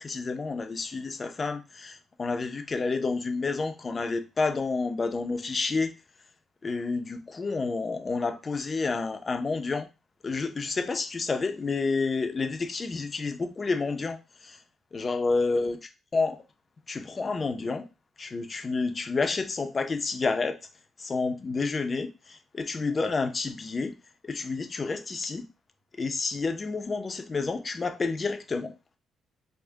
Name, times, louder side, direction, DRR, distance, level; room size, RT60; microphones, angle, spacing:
voice 1, 0.0-5.9 6.6-9.9 10.2-14.6 14.9-15.8 16.1-16.4 16.9-17.9 18.2-20.6 21.0-23.9 24.2-25.5 26.0-28.7, left 4 dB, 35° left, 0.6 m, -29 dB
3.4 x 2.2 x 3.6 m
cardioid pair, 90°, 0 cm